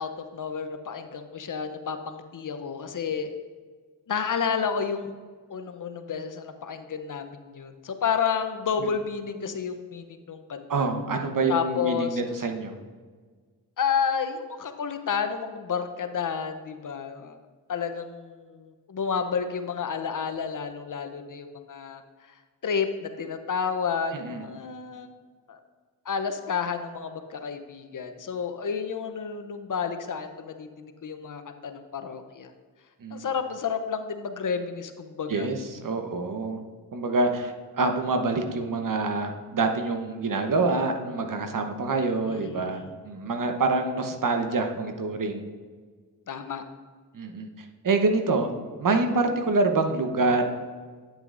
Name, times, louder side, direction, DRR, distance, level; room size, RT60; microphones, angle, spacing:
voice 1, 0.0-3.3 4.1-5.2 5.5-10.9 11.5-12.2 13.8-17.4 17.7-22.4 22.6-25.1 25.5-25.6 26.0-32.5 33.1-35.5 42.3-42.9 46.3-46.6, left 6 dB, 50° left, 8 dB, 0.8 m, -31 dB
voice 2, 10.7-12.7 24.1-24.4 33.0-33.3 35.3-36.6 36.9-45.4 47.1-48.5 48.8-50.4, right 3 dB, 50° right, 5 dB, 1.1 m, -26 dB
8.8 x 7.9 x 2.6 m, 1.5 s
supercardioid pair, 45°, 41 cm